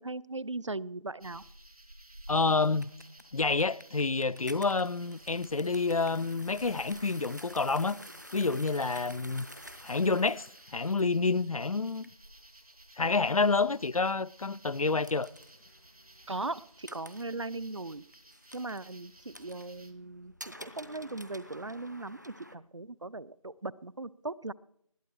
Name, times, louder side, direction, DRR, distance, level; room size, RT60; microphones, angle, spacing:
voice 1, 0.0-1.4 16.3-18.0 18.5-24.5, right 2 dB, 55° right, 0.5 m, -38 dB
sound 1, 1.2-19.9, right 1 dB, 90° right, 2.2 m, -55 dB
voice 2, 2.3-2.9 3.3-8.0 8.3-9.5 9.8-10.5 10.7-12.1 13.0-15.3, left 4 dB, 75° left, 0.5 m, -28 dB
sound 2, 2.6-22.6, equal, 30° right, 0.8 m, -51 dB
20.0 x 12.5 x 4.6 m
figure-of-eight pair, 180°, 18 cm